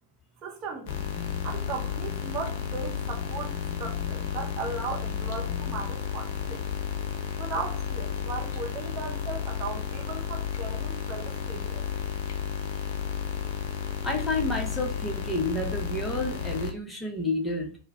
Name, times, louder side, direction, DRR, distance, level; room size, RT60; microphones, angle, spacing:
voice 1, 0.4-1.0 1.4-3.5 3.8-6.6 7.3-11.8, right 4 dB, 35° right, 0.6 m, -37 dB
sound 1, 0.9-16.7, left 7 dB, 50° left, 0.7 m, -32 dB
voice 2, 14.0-17.8, left 1 dB, 5° left, 1.0 m, -30 dB
4.4 x 2.2 x 4.1 m
figure-of-eight pair, 90°, 0 cm